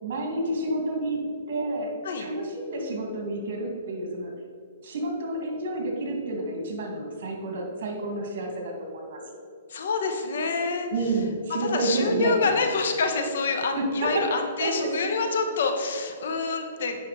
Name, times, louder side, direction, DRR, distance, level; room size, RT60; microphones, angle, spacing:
voice 1, 0.0-1.9 2.2-4.3 4.8-9.4 10.9-12.5 13.8-14.3 14.6-15.1, right 2 dB, 60° right, 1 dB, 2.2 m, -29 dB
voice 2, 9.7-10.9 11.6-17.0, left 4 dB, 70° left, 5 dB, 1.1 m, -27 dB
8.6 x 5.8 x 4.2 m, 2.2 s
hypercardioid pair, 145°, 0 cm